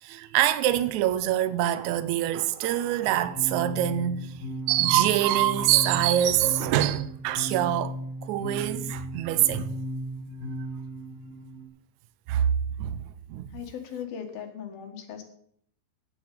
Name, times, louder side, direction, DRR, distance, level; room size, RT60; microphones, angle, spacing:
voice 1, 0.0-7.9 8.2-9.7 12.3-12.5 12.8-13.5, right 12 dB, 85° right, 1.6 m, -25 dB
sound 1, 3.1-11.7, equal, 40° left, 6.0 m, -36 dB
voice 2, 13.5-15.2, left 8 dB, 80° left, 3.6 m, -38 dB
9.9 x 8.7 x 8.4 m
omnidirectional pair, 4.2 m